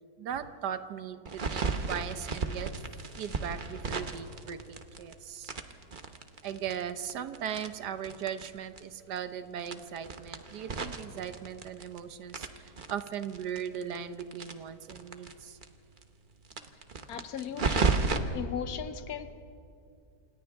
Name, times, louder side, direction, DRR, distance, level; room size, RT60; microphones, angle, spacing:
voice 1, 0.2-2.7 3.2-5.5 6.4-15.6, right 8 dB, 70° right, 11 dB, 1.4 m, -38 dB
sound 1, 1.3-5.1 5.4-8.5 8.8-8.9 9.1-9.2 9.6-12.0 12.3-15.3 15.6-15.7 16.0-16.1 16.5-18.2, right 4 dB, 35° right, 0.9 m, -33 dB
voice 2, 17.1-18.0 18.3-19.3, left 8 dB, 65° left, 10 dB, 1.3 m, -37 dB
28.0 x 27.0 x 3.5 m, 2.4 s
omnidirectional pair, 1.9 m